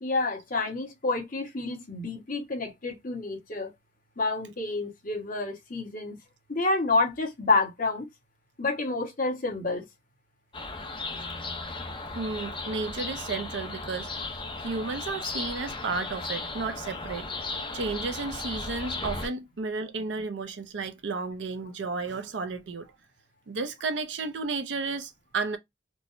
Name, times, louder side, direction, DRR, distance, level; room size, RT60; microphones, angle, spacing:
voice 1, 0.0-3.7 4.2-6.2 6.5-8.1 8.6-9.8, left 3 dB, 50° left, 1.3 m, -28 dB
sound 1, 10.5-19.3, left 3 dB, 25° left, 0.7 m, -36 dB
voice 2, 12.1-17.3 17.7-22.9 23.5-25.6, right 4 dB, 80° right, 0.5 m, -33 dB
4.5 x 2.0 x 2.5 m
head